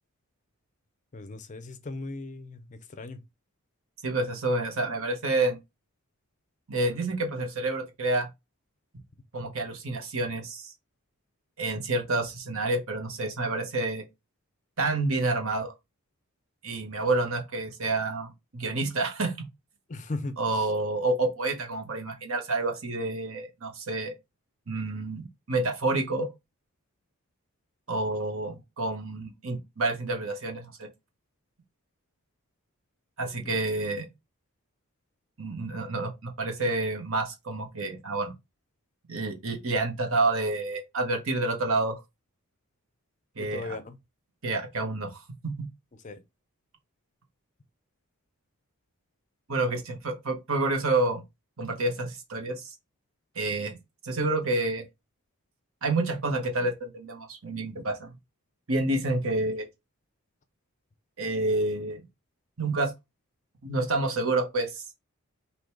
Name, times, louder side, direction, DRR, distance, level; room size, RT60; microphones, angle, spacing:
voice 1, 1.1-3.2 19.9-20.7 33.4-33.5 43.4-44.0 46.0-46.2 49.5-49.8, left 2 dB, 35° left, 0.5 m, -38 dB
voice 2, 4.0-5.6 6.7-8.3 9.3-10.7 11.6-14.0 14.8-15.7 16.6-19.5 20.4-24.1 24.7-26.3 27.9-30.9 33.2-34.1 35.4-38.3 39.1-42.0 43.4-43.8 44.4-45.2 45.4-45.7 49.5-51.2 51.6-52.7 53.3-53.8 54.0-54.8 55.8-58.1 58.7-59.6 61.2-62.0 62.6-62.9 63.6-64.9, right 2 dB, 65° right, 1.2 m, -29 dB
3.8 x 2.8 x 4.6 m
head